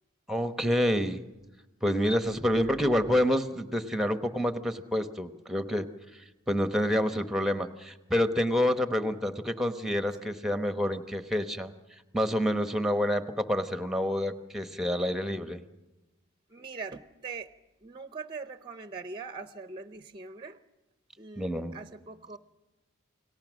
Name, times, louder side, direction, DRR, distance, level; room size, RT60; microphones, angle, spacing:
voice 1, 0.3-1.2 1.8-5.9 6.5-11.7 12.1-15.6 21.4-21.8, equal, ahead, 9 dB, 1.0 m, -28 dB
voice 2, 2.0-2.7 10.2-10.3 16.5-17.5 17.8-20.6 21.2-22.4, right 4 dB, 25° right, 11 dB, 0.7 m, -42 dB
29.0 x 18.5 x 6.3 m, 1.1 s
head